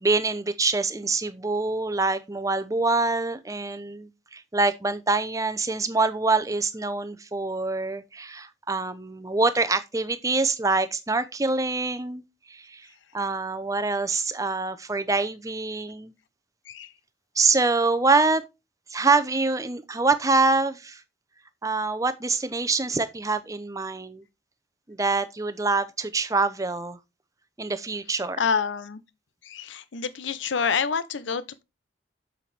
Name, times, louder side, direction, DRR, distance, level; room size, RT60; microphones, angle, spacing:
voice 1, 0.0-12.8 13.1-16.1 17.4-18.4 18.9-21.0 21.6-24.2 24.9-27.0 27.6-28.4, right 3 dB, 20° right, 0.7 m, -25 dB
voice 2, 28.4-29.0 29.4-31.6, left 6 dB, 85° left, 0.7 m, -27 dB
7.5 x 5.9 x 3.4 m
head